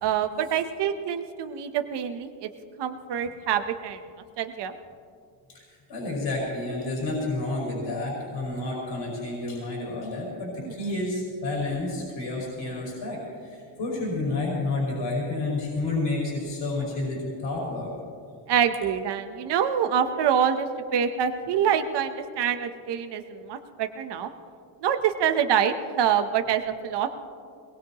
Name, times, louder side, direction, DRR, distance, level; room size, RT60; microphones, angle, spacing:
voice 1, 0.0-2.5 2.8-4.0 4.4-4.7 10.6-10.7 18.5-24.3 24.8-27.1, right 8 dB, 55° right, 7 dB, 1.0 m, -26 dB
voice 2, 5.5-17.9, left 2 dB, 60° left, -5 dB, 5.5 m, -30 dB
22.5 x 20.0 x 3.0 m, 2.3 s
cardioid pair, 145°, 50 cm